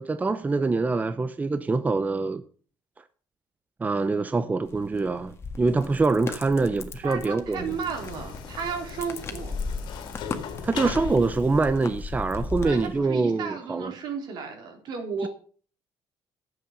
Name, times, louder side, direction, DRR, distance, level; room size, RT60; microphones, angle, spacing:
voice 1, 0.0-2.4 3.8-7.7 10.6-13.9, right 3 dB, 20° right, 0.7 m, -25 dB
sound 1, 4.7-13.0, left 4 dB, 35° left, 1.8 m, -37 dB
voice 2, 7.0-9.6 12.6-15.3, right 6 dB, 70° right, 4.0 m, -33 dB
sound 2, 7.6-12.7, left 7 dB, 75° left, 2.3 m, -39 dB
11.0 x 8.0 x 6.6 m
cardioid pair, 105°, 8 cm